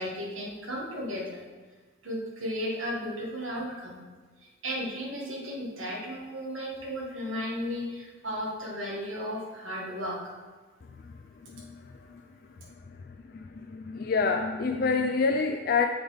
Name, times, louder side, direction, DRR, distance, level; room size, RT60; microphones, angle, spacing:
voice 1, 0.0-1.4 2.0-4.0 4.4-10.2, equal, 85° right, -3 dB, 1.7 m, -34 dB
voice 2, 13.3-15.9, left 4 dB, 45° left, 3 dB, 0.4 m, -26 dB
7.0 x 3.9 x 5.0 m, 1.3 s
head